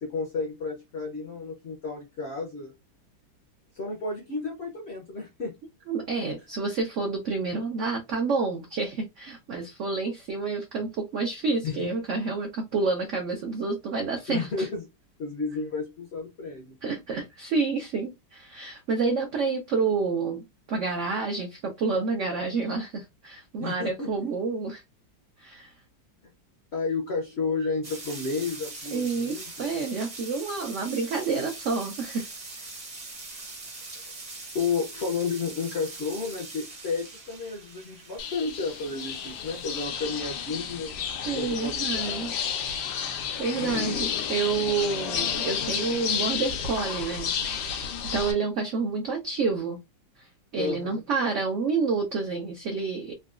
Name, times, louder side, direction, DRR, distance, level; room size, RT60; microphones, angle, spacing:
voice 1, 0.0-2.7 3.7-5.5 6.1-6.3 11.6-11.9 14.3-14.9 15.2-16.7 23.6-24.1 26.7-29.7 33.9-34.1 34.5-41.0 41.4-42.3 50.6-51.0, left 4 dB, 60° left, 0.6 m, -32 dB
voice 2, 5.9-14.7 16.8-24.8 25.4-25.7 28.9-32.3 33.9-34.0 41.2-42.3 43.1-47.9 48.1-49.8 50.2-50.3 50.5-53.1, right 4 dB, 75° right, 0.6 m, -29 dB
sound 1, 27.8-39.9, right 3 dB, 35° right, 0.6 m, -42 dB
sound 2, 38.2-48.3, left 7 dB, 85° left, 1.4 m, -31 dB
3.8 x 2.2 x 2.4 m
omnidirectional pair, 2.1 m